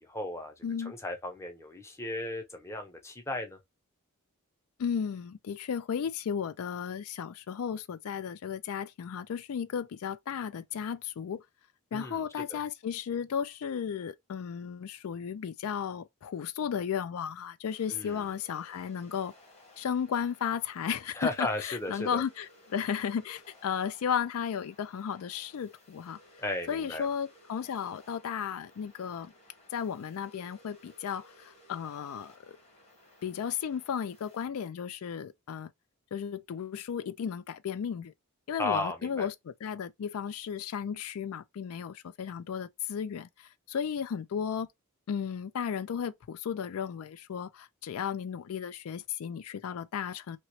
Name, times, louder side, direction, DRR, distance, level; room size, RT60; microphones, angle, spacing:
voice 1, 0.0-3.6 11.9-12.6 17.9-18.3 21.1-22.2 26.4-27.1 38.6-39.3, left 2 dB, 10° left, 0.6 m, -35 dB
voice 2, 0.6-0.9 4.8-11.4 11.9-19.3 19.8-26.2 26.7-29.3 29.7-32.3 33.2-35.7 36.1-38.1 38.5-39.3 39.6-44.7 45.1-50.4, left 7 dB, 75° left, 0.3 m, -34 dB
sound 1, 17.7-34.5, left 1 dB, 30° left, 1.2 m, -59 dB
3.0 x 2.9 x 2.8 m
head